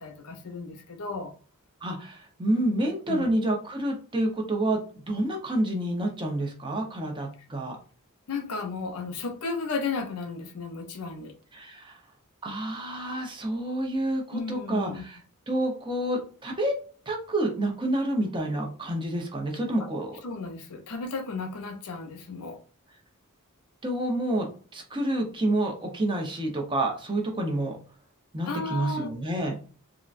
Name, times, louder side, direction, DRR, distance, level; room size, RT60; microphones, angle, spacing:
voice 1, 0.0-1.3 3.1-3.3 8.3-11.3 14.3-15.0 19.8-19.9 20.2-22.6 28.4-29.1, left 4 dB, 85° left, 0.6 m, -34 dB
voice 2, 1.8-4.8 5.1-7.8 11.5-12.0 12.4-15.2 15.5-16.7 17.1-20.1 23.8-27.8 28.3-29.6, right 1 dB, 20° right, 0.7 m, -28 dB
3.7 x 2.1 x 2.5 m
head